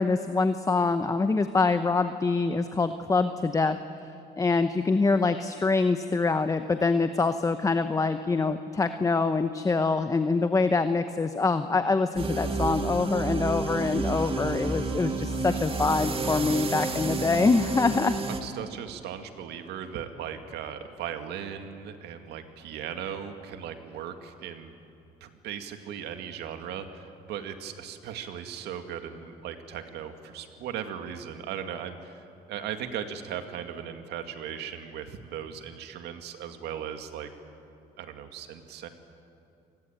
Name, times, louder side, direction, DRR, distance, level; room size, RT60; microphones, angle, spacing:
voice 1, 0.0-3.8 4.4-18.1, left 3 dB, 20° left, 9 dB, 0.9 m, -25 dB
sound 1, 12.2-18.4, right 3 dB, 35° right, 2.2 m, -30 dB
voice 2, 18.3-24.7 25.2-37.3 38.0-38.9, right 8 dB, 80° right, 7 dB, 2.1 m, -38 dB
27.5 x 19.5 x 9.0 m, 2.6 s
cardioid pair, 110°, 17 cm